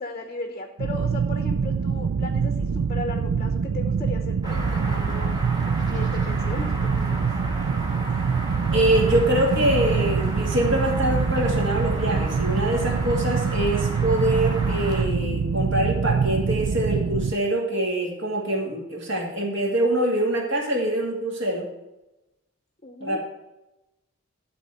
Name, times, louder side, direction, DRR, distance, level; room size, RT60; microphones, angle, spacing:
voice 1, 0.0-5.4 5.9-7.3 22.8-23.2, left 2 dB, 25° left, 5 dB, 0.8 m, -36 dB
sound 1, 0.8-17.3, right 5 dB, 70° right, 0.4 m, -25 dB
sound 2, 4.4-15.0, right 1 dB, 20° right, 1.8 m, -34 dB
voice 2, 8.7-21.7 23.0-23.2, right 1 dB, 55° right, -1 dB, 2.5 m, -24 dB
12.0 x 4.1 x 7.8 m, 0.96 s
head